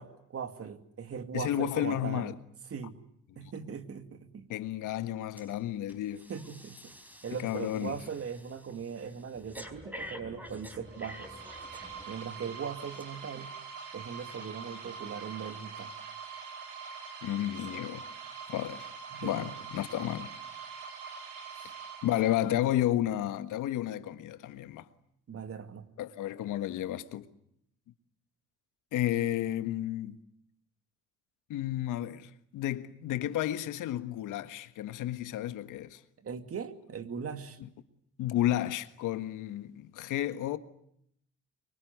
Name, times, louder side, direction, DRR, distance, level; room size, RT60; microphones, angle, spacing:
voice 1, 0.0-2.3 2.7-3.0 3.4-4.5 6.3-6.9 7.2-11.4 12.1-13.5 13.9-16.0 19.1-19.5 21.6-21.7 25.3-25.9 35.4-35.5 36.2-37.6, right 6 dB, 50° right, 2.5 m, -40 dB
voice 2, 1.3-2.4 4.5-6.3 7.4-8.0 17.2-18.0 18.5-18.9 19.2-20.3 22.0-24.9 26.0-27.3 28.9-30.2 31.5-36.0 38.2-40.6, left 12 dB, 90° left, 1.6 m, -32 dB
Breathing, 5.4-5.6 5.9-12.3 12.9-13.0, left 1 dB, 5° right, 4.6 m, -48 dB
sound 1, 10.8-22.7, right 6 dB, 90° right, 6.9 m, -44 dB
24.5 x 24.0 x 9.4 m
cardioid pair, 90°, 30 cm